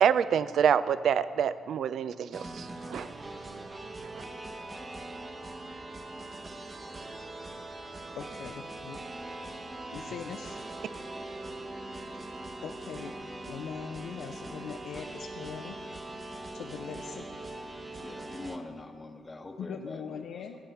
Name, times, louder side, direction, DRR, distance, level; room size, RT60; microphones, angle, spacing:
voice 1, 0.0-3.1, right 8 dB, 65° right, 15 dB, 0.3 m, -26 dB
sound 1, 2.3-18.6, right 2 dB, 25° right, 0.9 m, -41 dB
voice 2, 8.2-9.0 9.4-9.5 9.9-10.6 12.6-13.1 13.5-15.8 16.5-17.2 19.6-20.6, left 7 dB, 80° left, 2 dB, 0.7 m, -41 dB
voice 3, 18.0-20.6, left 2 dB, 20° left, 5 dB, 1.0 m, -44 dB
16.0 x 8.0 x 5.7 m, 2.3 s
cardioid pair, 105°, 0 cm